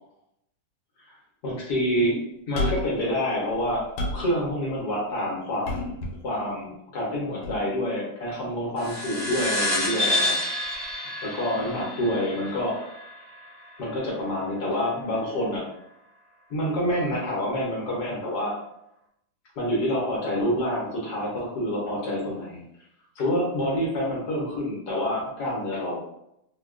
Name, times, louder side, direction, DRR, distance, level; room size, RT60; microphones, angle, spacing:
voice 1, 1.4-2.2 2.5-3.8 4.1-6.0 6.2-10.4 11.4-12.9 13.8-15.7 16.5-18.5 19.6-22.6 23.2-26.0, equal, 65° left, -4 dB, 1.4 m, -27 dB
sound 1, 2.6-3.0 3.5-4.3 5.7-6.2 7.4-7.6, left 1 dB, 85° left, 1.4 m, -29 dB
sound 2, 8.8-13.7, left 1 dB, 45° right, 0.9 m, -29 dB
3.7 x 2.2 x 2.4 m, 0.80 s
omnidirectional pair, 2.0 m